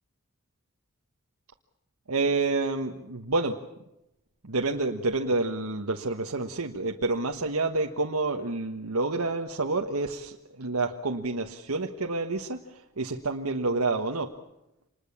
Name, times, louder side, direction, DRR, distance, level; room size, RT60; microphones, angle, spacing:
voice 1, 2.1-3.5 4.4-14.3, right 3 dB, 90° right, 2 dB, 1.4 m, -28 dB
26.5 x 21.0 x 7.2 m, 0.90 s
head